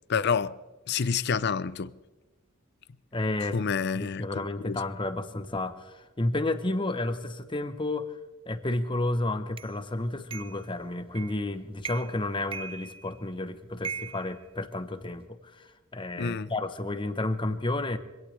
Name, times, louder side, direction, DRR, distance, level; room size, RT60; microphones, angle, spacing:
voice 1, 0.1-0.6 0.9-1.9 3.5-4.8 16.2-16.5, left 6 dB, 50° left, 0.5 m, -28 dB
voice 2, 3.1-3.6 3.9-8.1 8.5-18.0, left 2 dB, 25° left, 0.9 m, -31 dB
sound 1, 9.6-9.7 10.3-10.6 11.2-11.5 11.8-12.2 12.5-13.3 13.8-15.1, right 6 dB, 25° right, 0.4 m, -39 dB
24.5 x 17.0 x 3.3 m
head